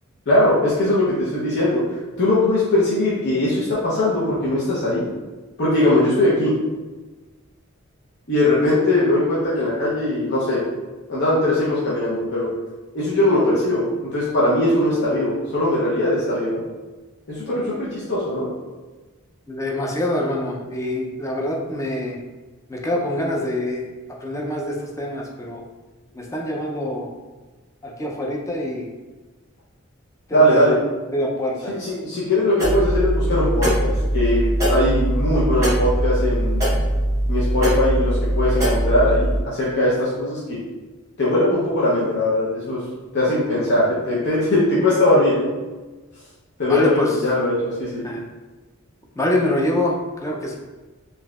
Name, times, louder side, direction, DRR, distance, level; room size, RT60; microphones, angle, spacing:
voice 1, 0.3-5.1 5.6-6.5 8.3-10.6 11.1-12.5 12.9-16.6 17.3-18.5 30.3-30.8 31.7-36.7 37.3-40.6 41.2-42.8 43.1-45.5 46.6-48.1, left 1 dB, 55° left, -8 dB, 0.7 m, -20 dB
voice 2, 19.5-22.2 22.7-23.8 24.2-25.6 26.1-27.1 27.8-28.9 30.3-30.5 31.1-31.7 46.7-47.1 48.0-48.2 49.2-50.0 50.2-50.6, left 1 dB, 15° left, -1 dB, 0.5 m, -25 dB
sound 1, 32.6-39.4, right 1 dB, 15° right, 1.0 m, -21 dB
4.0 x 2.7 x 2.3 m, 1.2 s
head